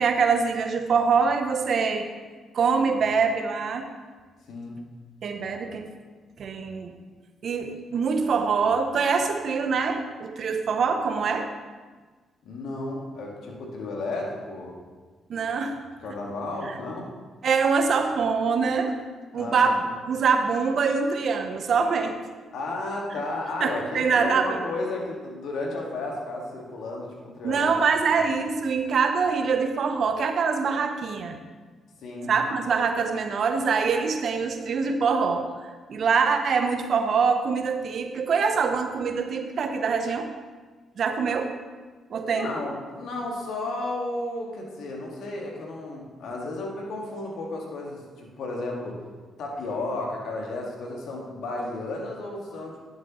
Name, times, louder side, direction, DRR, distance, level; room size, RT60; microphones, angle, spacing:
voice 1, 0.0-2.1 2.5-3.9 5.2-5.9 6.4-6.9 7.4-11.5 15.3-15.8 16.6-16.7 17.4-18.9 19.3-19.8 20.1-22.2 23.6-24.6 27.4-31.4 32.3-35.4 35.9-40.3 41.0-41.5 42.1-42.5, right 5 dB, 60° right, 6 dB, 0.8 m, -24 dB
voice 2, 12.4-14.8 16.0-17.1 19.3-19.7 22.5-27.7 28.0-28.3 32.0-32.3 42.2-49.0 49.4-52.8, left 2 dB, 70° left, -1 dB, 1.8 m, -33 dB
10.5 x 7.6 x 3.1 m, 1.4 s
hypercardioid pair, 50°, 0 cm